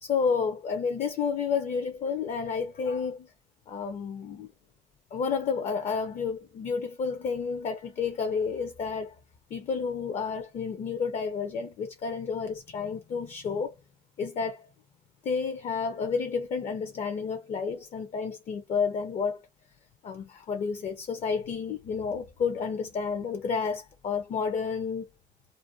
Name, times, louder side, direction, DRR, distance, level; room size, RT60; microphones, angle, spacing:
voice 1, 0.0-3.3 3.7-4.5 5.1-9.2 9.5-13.7 14.2-14.7 15.2-19.4 20.0-25.1, left 5 dB, 50° left, 0.5 m, -30 dB
2.5 x 2.2 x 2.5 m
cardioid pair, 105°, 15 cm